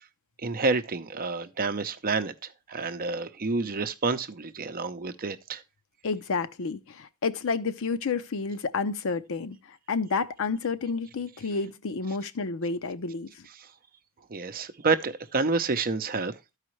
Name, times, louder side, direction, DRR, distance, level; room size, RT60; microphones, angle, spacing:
voice 1, 0.4-2.3 2.7-5.6 13.6-13.7 14.3-16.4, right 3 dB, 40° right, 0.7 m, -29 dB
voice 2, 6.0-9.6 9.9-13.3, left 4 dB, 65° left, 0.6 m, -30 dB
13.0 x 4.9 x 3.1 m
head